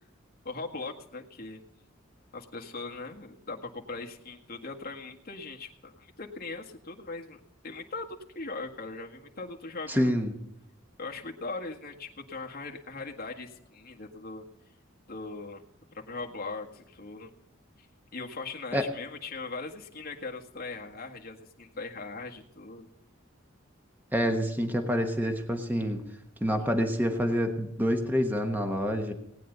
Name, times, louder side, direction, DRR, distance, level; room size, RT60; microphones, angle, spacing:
voice 1, 0.4-1.6 2.3-10.3 11.0-14.5 15.1-15.6 15.9-17.3 17.8-17.9 18.1-22.9, left 3 dB, 50° left, 1 dB, 1.7 m, -40 dB
voice 2, 9.9-10.3 18.7-18.9 24.1-26.0 26.4-29.1, equal, 10° right, 5 dB, 1.2 m, -27 dB
18.5 x 9.4 x 3.9 m, 0.82 s
head